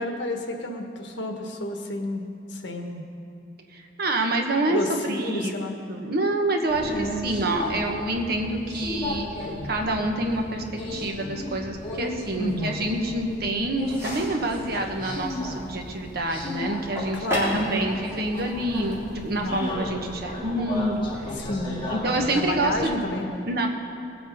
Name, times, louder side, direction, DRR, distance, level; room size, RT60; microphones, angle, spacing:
voice 1, 0.0-2.2 2.5-3.0 4.7-5.8 6.8-7.3 12.4-12.8 17.1-17.7 19.4-19.6 21.4-21.9 22.3-23.5, left 1 dB, 80° left, 4 dB, 1.4 m, -30 dB
voice 2, 3.7-5.5 5.9-10.6 10.9-21.4 21.9-22.9 23.5-23.7, right 1 dB, 60° right, 3 dB, 1.3 m, -27 dB
Subway metro underground, 6.7-22.8, left 1 dB, 30° left, 2.6 m, -35 dB
sound 1, 13.8-19.7, equal, 15° right, 3.7 m, -36 dB
20.0 x 8.1 x 5.3 m, 2.5 s
head